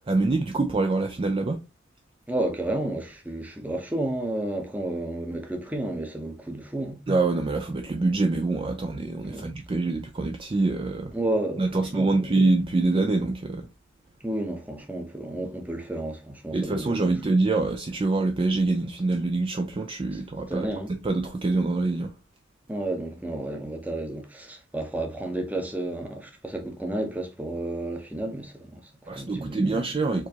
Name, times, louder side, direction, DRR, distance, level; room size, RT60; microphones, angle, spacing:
voice 1, 0.1-1.6 7.1-11.1 11.6-13.7 16.5-22.1 29.1-30.3, right 3 dB, 25° right, 0.4 m, -25 dB
voice 2, 2.3-7.0 9.2-9.5 11.1-12.3 14.2-17.1 20.1-20.2 20.5-20.9 22.7-29.8, right 1 dB, 10° right, 0.8 m, -32 dB
4.5 x 2.9 x 2.8 m
head